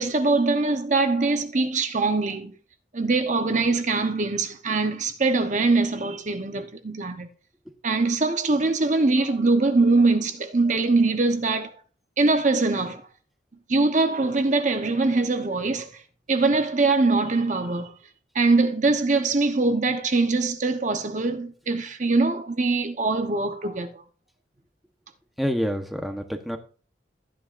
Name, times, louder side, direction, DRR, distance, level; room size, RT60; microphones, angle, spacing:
voice 1, 0.0-2.5 2.9-7.3 7.8-11.7 12.2-13.0 13.7-15.9 16.3-17.9 18.3-24.0, right 3 dB, 40° right, 1.0 m, -22 dB
voice 2, 25.4-26.6, equal, ahead, 1.0 m, -27 dB
13.5 x 10.0 x 2.6 m
head